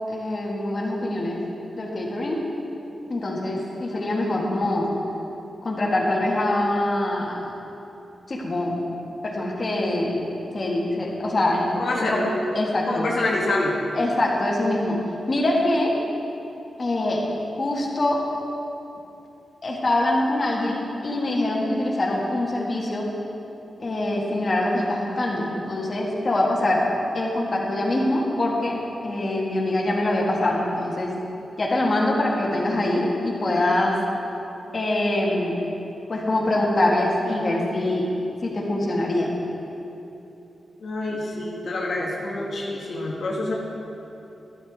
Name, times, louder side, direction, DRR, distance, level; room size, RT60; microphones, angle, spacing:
voice 1, 0.1-1.4 1.8-2.4 3.1-4.9 5.6-7.4 8.3-8.8 9.2-10.2 10.5-12.1 12.6-13.0 14.0-15.0 15.3-15.9 16.8-17.2 17.6-18.2 19.6-23.1 23.8-26.8 27.1-31.1 31.6-34.0 34.7-35.6 36.1-38.1 38.4-39.4, left 1 dB, 40° left, -3 dB, 1.8 m, -24 dB
voice 2, 3.9-4.7 11.8-12.3 12.9-13.9 40.8-43.5, left 2 dB, 70° left, -4 dB, 1.4 m, -27 dB
12.0 x 11.5 x 3.6 m, 2.9 s
wide cardioid pair, 105°, 0 cm